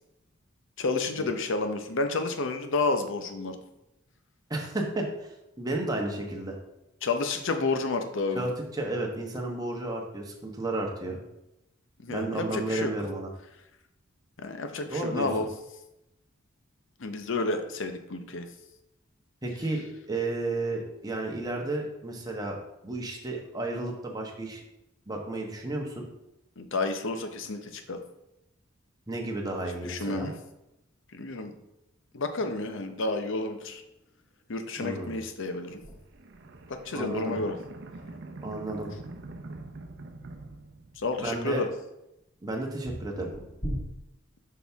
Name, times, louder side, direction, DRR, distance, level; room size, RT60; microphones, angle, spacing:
voice 1, 0.8-3.6 7.0-8.5 12.0-12.9 14.4-15.5 17.0-18.5 26.6-28.0 29.8-30.3 31.1-31.5 32.1-33.8 34.5-35.8 36.7-37.6 41.0-41.7, left 3 dB, 65° left, 7 dB, 0.7 m, -30 dB
voice 2, 4.5-6.6 8.3-11.2 12.1-13.3 14.9-15.3 19.4-22.6 22.8-24.6 25.1-26.1 29.1-30.3 34.8-35.2 36.9-37.3 38.4-38.9 41.2-41.6 42.4-43.3, right 2 dB, 20° right, 0 dB, 1.1 m, -32 dB
sound 1, 33.9-34.5 35.5-35.6 35.8-37.4 37.7-37.9 38.4-38.5 40.5-40.6 42.6-43.8, equal, 25° left, 1.6 m, -40 dB
sound 2, 35.7-41.5, right 2 dB, 60° right, 0.7 m, -45 dB
6.2 x 5.6 x 3.5 m, 0.89 s
head